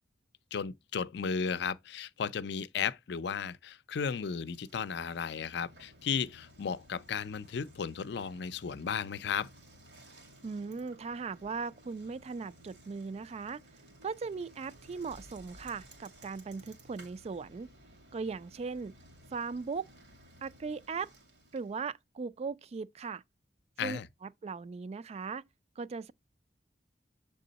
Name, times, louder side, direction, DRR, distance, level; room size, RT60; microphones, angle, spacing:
voice 1, 0.5-9.5 23.8-24.1, left 6 dB, 70° left, 0.5 m, -35 dB
Bicycle, 4.3-21.9, equal, 90° right, 2.2 m, -57 dB
voice 2, 10.4-13.6 14.0-17.7 18.1-18.9 19.3-19.9 20.4-21.1 21.5-23.2 23.8-25.4 25.8-26.1, right 5 dB, 35° right, 0.3 m, -38 dB
7.6 x 3.6 x 4.0 m
head